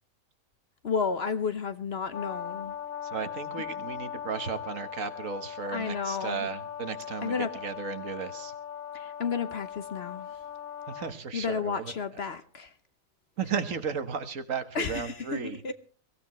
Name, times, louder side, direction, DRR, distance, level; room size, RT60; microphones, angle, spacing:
voice 1, 0.8-2.7 5.7-6.5 7.2-7.5 8.9-10.4 11.3-12.7 14.7-15.7, left 5 dB, 50° left, 1.0 m, -32 dB
Brass instrument, 2.1-11.1, left 9 dB, 65° left, 1.6 m, -39 dB
voice 2, 3.0-8.5 10.9-11.9 13.4-15.6, right 6 dB, 65° right, 1.6 m, -35 dB
23.0 x 16.0 x 3.1 m
omnidirectional pair, 1.5 m